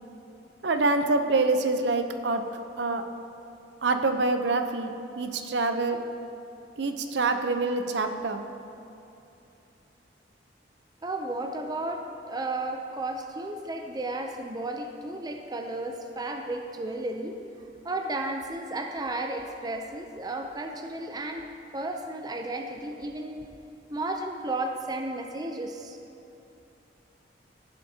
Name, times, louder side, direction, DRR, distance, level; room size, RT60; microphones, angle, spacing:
voice 1, 0.6-2.4 2.8-3.0 3.8-4.9 5.1-6.0 6.8-8.4, right 3 dB, 70° right, 7 dB, 0.6 m, -26 dB
voice 2, 11.0-17.4 17.8-21.5 21.7-23.5 23.9-26.0, right 2 dB, 20° right, 4 dB, 0.5 m, -33 dB
15.0 x 7.4 x 2.8 m, 2.8 s
head